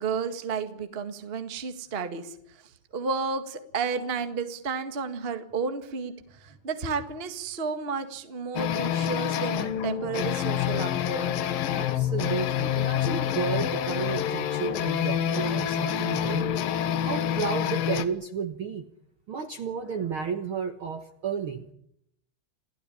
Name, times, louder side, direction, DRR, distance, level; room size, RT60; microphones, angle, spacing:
voice 1, 0.0-2.4 2.9-6.1 6.4-11.3, right 5 dB, 25° right, 8 dB, 1.2 m, -32 dB
sound 1, 8.6-18.1, left 10 dB, 80° left, 3.0 m, -27 dB
voice 2, 11.7-16.5 17.0-18.8 19.3-21.7, right 6 dB, 55° right, 6 dB, 1.6 m, -32 dB
28.0 x 16.0 x 10.0 m, 0.77 s
omnidirectional pair, 4.0 m